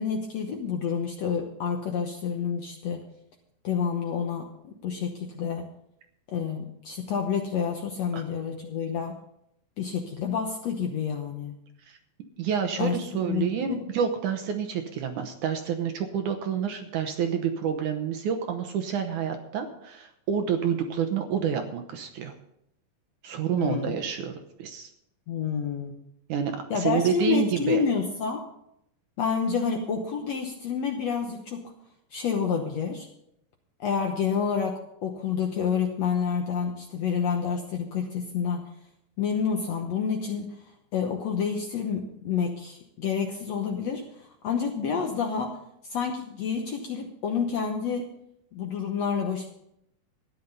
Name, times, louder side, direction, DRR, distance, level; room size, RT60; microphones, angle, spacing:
voice 1, 0.0-3.1 3.6-5.7 6.3-9.2 9.8-11.6 12.8-13.8 23.5-24.0 25.3-26.0 26.7-28.4 29.2-31.7 32.1-33.1 33.8-38.7 39.2-40.6 40.9-45.6 45.8-48.1 48.5-49.5, left 6 dB, 65° left, 3 dB, 1.7 m, -29 dB
voice 2, 12.4-22.3 23.2-24.9 26.3-27.8, right 8 dB, 70° right, 6 dB, 2.2 m, -28 dB
14.0 x 10.0 x 5.4 m, 0.77 s
omnidirectional pair, 4.2 m